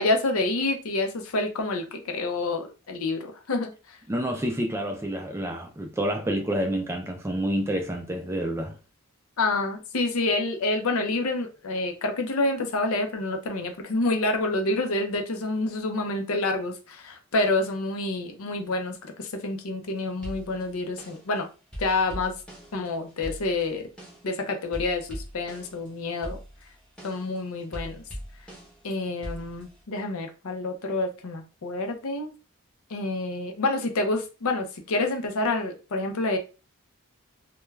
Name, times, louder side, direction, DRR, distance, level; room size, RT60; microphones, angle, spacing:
voice 1, 0.0-4.0 9.4-21.5 21.8-22.3 22.7-23.8 24.2-26.4 27.0-28.0 28.8-32.3 32.9-36.4, left 2 dB, 70° left, 0.5 m, -28 dB
voice 2, 4.1-8.8, right 1 dB, 10° right, 0.4 m, -28 dB
sound 1, 20.2-21.4 21.7-24.4 24.7-25.9 26.2-28.9 29.2-29.8, equal, 5° left, 0.8 m, -41 dB
2.2 x 2.2 x 3.1 m
head